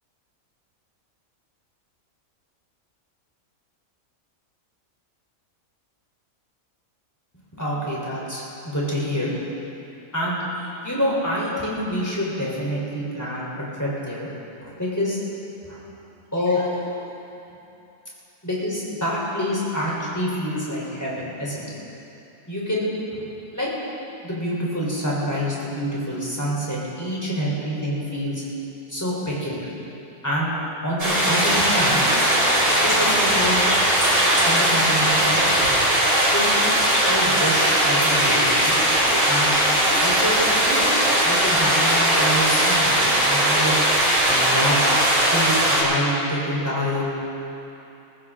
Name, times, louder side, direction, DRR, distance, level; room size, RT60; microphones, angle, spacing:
voice 1, 7.5-9.6 10.1-14.3 14.6-15.2 15.6-15.8 16.3-16.8 18.4-21.7 22.5-23.2 23.5-23.7 24.2-28.4 28.9-29.7 30.2-30.5 30.8-32.1 32.7-33.6 34.4-35.6 36.3-36.6 37.1-38.8 39.3-39.6 40.0-40.9 41.2-43.8 44.3-44.8 45.3-47.1, equal, 10° left, -6 dB, 3.8 m, -27 dB
sound 1, 31.0-45.8, right 1 dB, 75° right, 5.1 m, -19 dB
21.0 x 14.5 x 3.8 m, 2.9 s
omnidirectional pair, 1.5 m